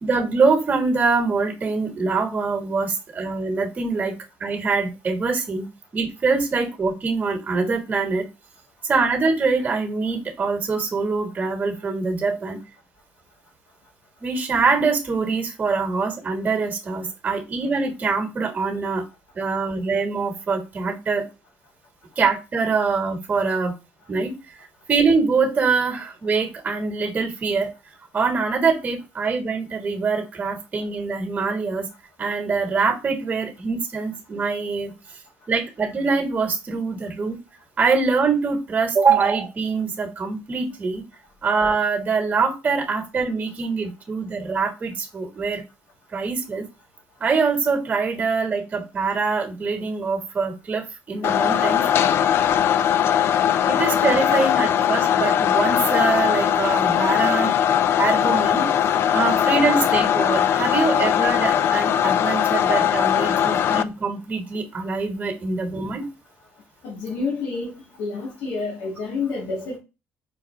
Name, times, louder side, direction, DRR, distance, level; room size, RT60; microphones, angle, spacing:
voice 1, 0.0-5.7 5.9-8.3 8.8-12.6 14.2-19.1 19.3-21.3 22.2-23.7 24.1-24.3 24.9-27.7 28.1-31.8 32.2-34.9 35.5-37.4 37.8-41.0 41.4-45.6 46.1-46.6 47.2-51.8 53.7-57.5 58.0-58.7 59.1-66.0, right 4 dB, 30° right, 1.3 m, -24 dB
sound 1, 51.2-63.8, left 9 dB, 55° left, 0.3 m, -20 dB
voice 2, 66.8-69.8, left 4 dB, 90° left, 1.7 m, -29 dB
5.0 x 2.4 x 3.1 m
cardioid pair, 105°, 5 cm